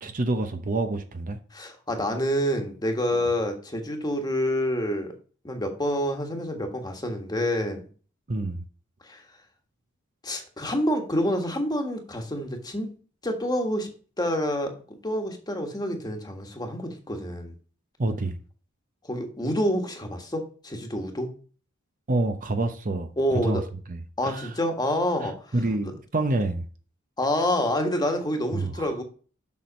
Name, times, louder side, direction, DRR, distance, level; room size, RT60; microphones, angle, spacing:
voice 1, 0.0-1.4 3.1-3.2 8.3-8.6 18.0-18.4 22.1-23.1 23.4-23.6 23.9-24.5 25.2-26.7 28.5-28.9, right 2 dB, 40° right, 0.8 m, -28 dB
voice 2, 1.5-5.1 5.4-7.9 9.0-9.2 10.2-12.9 13.2-13.9 14.2-14.7 15.0-17.5 19.0-21.3 23.2-23.6 24.2-25.4 25.8-25.9 27.2-29.0, equal, 20° left, 1.5 m, -27 dB
7.3 x 6.1 x 5.2 m
head